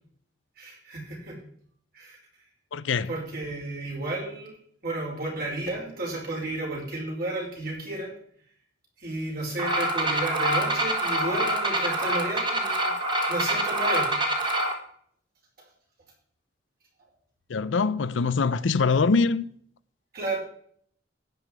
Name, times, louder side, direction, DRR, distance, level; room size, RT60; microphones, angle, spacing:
voice 1, 0.6-1.4 1.9-2.2 3.1-4.5 4.8-8.1 9.0-12.9 13.3-14.1 20.1-20.4, right 2 dB, 55° right, 5.1 m, -32 dB
voice 2, 2.7-3.1 17.5-19.5, left 4 dB, 80° left, 0.6 m, -23 dB
sound 1, 9.6-14.7, right 1 dB, 25° right, 1.9 m, -26 dB
12.0 x 9.5 x 4.7 m
head